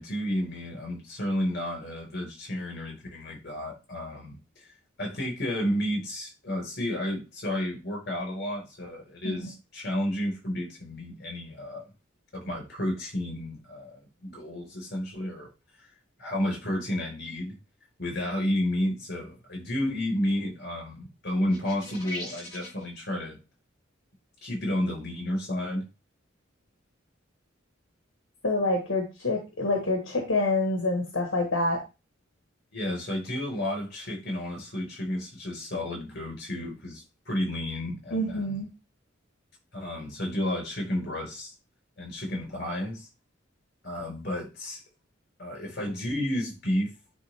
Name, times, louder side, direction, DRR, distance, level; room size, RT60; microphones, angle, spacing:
voice 1, 0.0-11.8 12.3-15.5 15.8-15.9 16.2-17.6 18.0-23.4 24.4-25.9 32.7-38.6 39.7-41.5 42.0-43.1 43.8-44.8 45.4-46.9, left 1 dB, 55° left, 4.6 m, -31 dB
sound 1, 21.5-22.8, left 1 dB, 20° left, 4.4 m, -39 dB
voice 2, 28.4-31.8 38.1-38.7, left 2 dB, 80° left, 1.6 m, -27 dB
10.0 x 3.6 x 3.5 m
head